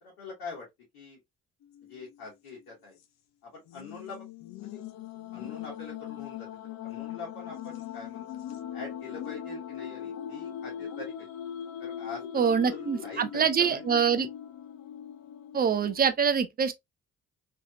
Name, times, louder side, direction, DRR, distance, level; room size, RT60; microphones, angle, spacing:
voice 1, 0.0-0.7 0.9-1.2 1.8-3.0 3.4-4.3 4.6-4.8 5.3-11.3 11.8-14.0, left 4 dB, 65° left, 1.5 m, -44 dB
sound 1, 1.6-2.2 2.6-2.7 3.7-16.1, left 9 dB, 45° left, 0.5 m, -40 dB
voice 2, 12.3-14.3 15.5-16.7, right 7 dB, 25° right, 0.5 m, -25 dB
3.2 x 2.8 x 2.2 m
figure-of-eight pair, 40°, 40 cm